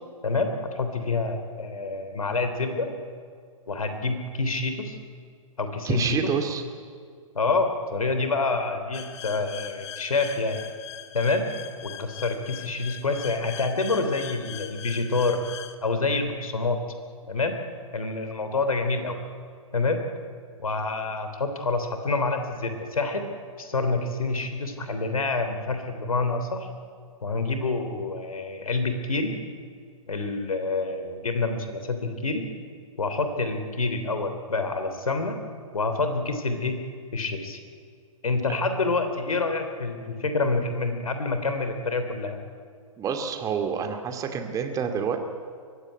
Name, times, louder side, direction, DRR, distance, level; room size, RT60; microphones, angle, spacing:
voice 1, 0.2-2.9 3.7-5.0 5.6-6.2 7.3-10.6 11.1-11.5 11.8-15.4 15.8-16.8 17.3-17.5 17.9-19.2 19.7-20.0 20.6-23.3 23.6-26.7 27.2-29.4 30.1-32.5 33.0-35.4 35.7-36.8 37.1-37.6 38.2-42.4, left 3 dB, 80° left, 7 dB, 3.4 m, -27 dB
voice 2, 5.8-6.6 43.0-45.2, right 7 dB, 20° right, 6 dB, 2.3 m, -27 dB
sound 1, 8.9-15.8, left 11 dB, 50° left, 1.6 m, -41 dB
23.0 x 16.0 x 9.7 m, 2.1 s
figure-of-eight pair, 125°, 18 cm